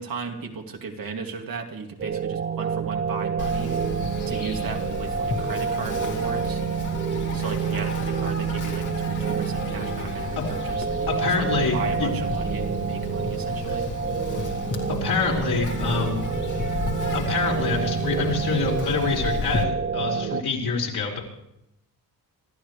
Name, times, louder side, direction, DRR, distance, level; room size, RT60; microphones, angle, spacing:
voice 1, 0.0-3.8 4.3-6.6 7.3-13.9, right 4 dB, 60° right, 2 dB, 2.6 m, -35 dB
sound 1, 2.0-20.4, right 7 dB, 30° right, 0.5 m, -28 dB
Insect, 3.4-19.6, left 4 dB, 50° left, 2.5 m, -32 dB
voice 2, 11.1-12.1 13.7-13.8 15.0-16.2 16.7-16.8 17.1-21.2, left 5 dB, 70° left, -1 dB, 4.8 m, -26 dB
26.0 x 13.5 x 3.3 m, 0.82 s
wide cardioid pair, 135°, 39 cm